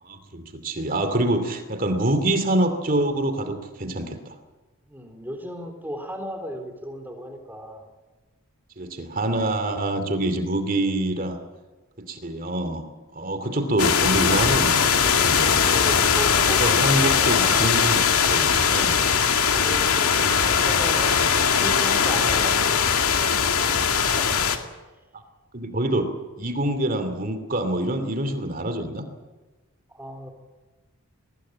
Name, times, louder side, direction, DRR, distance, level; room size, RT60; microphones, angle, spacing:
voice 1, 0.0-4.3 8.8-11.4 12.0-15.5 16.4-19.1 20.2-20.4 25.5-29.0, right 1 dB, 40° right, 8 dB, 2.7 m, -26 dB
voice 2, 4.9-7.9 13.3-13.5 15.4-17.8 19.5-22.9 24.1-24.5 29.9-30.3, equal, 10° right, 5 dB, 3.8 m, -36 dB
sound 1, 13.8-24.6, left 6 dB, 85° left, 2.2 m, -20 dB
22.0 x 20.5 x 8.8 m, 1.2 s
head